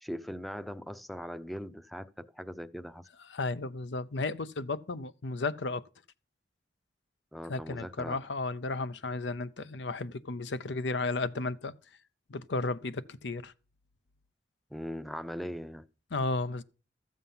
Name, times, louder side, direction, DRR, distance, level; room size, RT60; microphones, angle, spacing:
voice 1, 0.0-3.1 7.3-8.2 14.7-15.9, equal, ahead, 0.5 m, -40 dB
voice 2, 3.3-5.8 7.5-11.7 12.3-13.5 16.1-16.6, left 3 dB, 85° left, 0.7 m, -33 dB
14.0 x 7.4 x 5.7 m
head